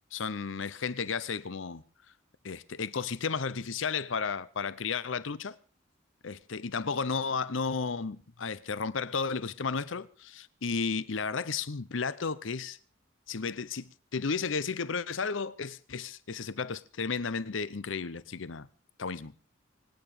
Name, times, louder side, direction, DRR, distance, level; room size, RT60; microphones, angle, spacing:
voice 1, 0.1-1.8 2.4-5.6 6.2-12.8 13.3-18.7 19.0-19.3, left 5 dB, 75° left, 0.8 m, -33 dB
25.0 x 9.2 x 4.9 m
head